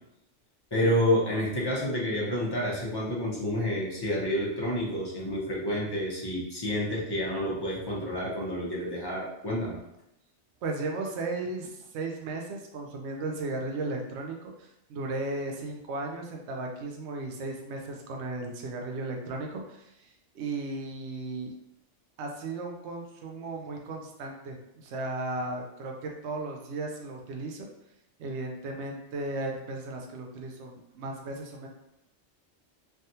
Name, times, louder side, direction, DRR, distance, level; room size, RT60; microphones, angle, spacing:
voice 1, 0.7-9.8, left 1 dB, 25° left, -4 dB, 0.6 m, -29 dB
voice 2, 10.6-21.5 22.2-27.7 28.2-31.7, right 2 dB, 70° right, 1 dB, 0.8 m, -35 dB
3.4 x 2.3 x 2.7 m, 0.83 s
omnidirectional pair, 1.2 m